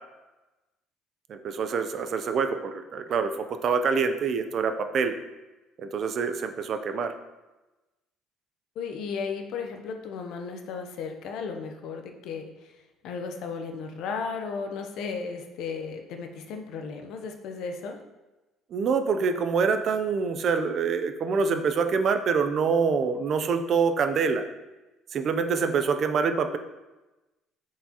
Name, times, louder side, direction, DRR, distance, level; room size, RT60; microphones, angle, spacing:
voice 1, 1.3-5.1 5.8-7.1 18.7-24.5 25.1-26.6, right 5 dB, 35° right, 8 dB, 0.4 m, -26 dB
voice 2, 8.8-12.7 13.0-18.0, left 5 dB, 55° left, 4 dB, 0.7 m, -35 dB
7.4 x 4.7 x 2.9 m, 1.1 s
cardioid pair, 175°, 0 cm